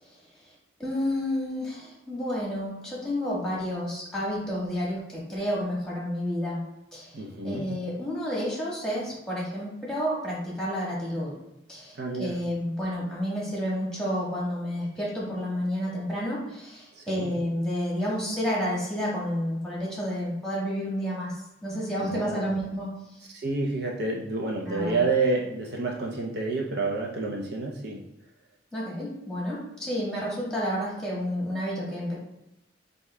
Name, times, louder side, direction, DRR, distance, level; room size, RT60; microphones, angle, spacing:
voice 1, 0.8-11.3 11.7-23.2 24.7-25.0 28.7-32.2, equal, 5° left, -6 dB, 1.5 m, -30 dB
voice 2, 7.1-7.7 12.0-12.3 17.0-17.3 22.0-22.5 23.3-28.0, right 3 dB, 60° right, -1 dB, 0.6 m, -29 dB
8.0 x 2.7 x 2.2 m, 0.87 s
head